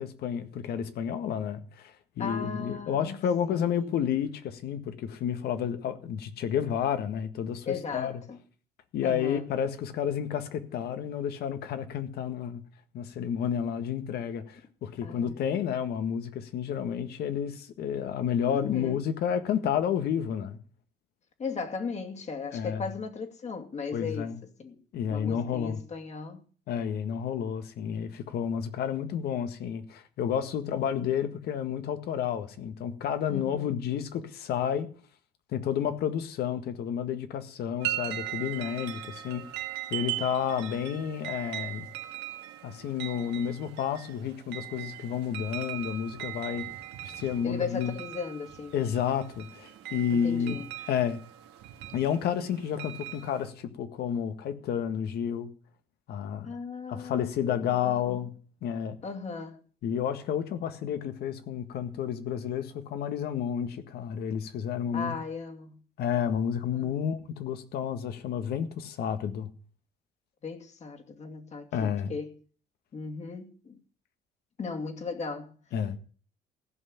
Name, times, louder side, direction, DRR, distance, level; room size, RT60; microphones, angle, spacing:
voice 1, 0.0-8.2 8.9-12.6 12.9-20.6 22.5-22.9 23.9-24.4 24.9-25.8 26.7-34.9 35.5-39.5 39.9-41.9 42.6-46.7 47.0-47.9 48.7-50.6 50.9-51.2 51.9-55.5 56.1-56.5 56.9-58.3 58.6-59.0 59.8-65.2 66.0-69.5 71.7-72.1 75.7-76.0, left 8 dB, 70° left, 1.8 m, -31 dB
voice 2, 2.2-4.0 7.7-8.4 9.0-9.4 15.0-15.4 18.5-19.0 21.4-24.8 25.1-26.4 33.3-33.8 47.4-48.7 50.1-50.7 56.4-58.2 59.0-59.6 64.9-65.8 66.7-66.9 70.4-72.4 72.9-73.8 74.6-75.5, left 5 dB, 40° left, 2.6 m, -37 dB
Garden chimes, 37.8-53.5, right 14 dB, 90° right, 1.8 m, -39 dB
15.5 x 5.8 x 8.7 m
cardioid pair, 110°, 17 cm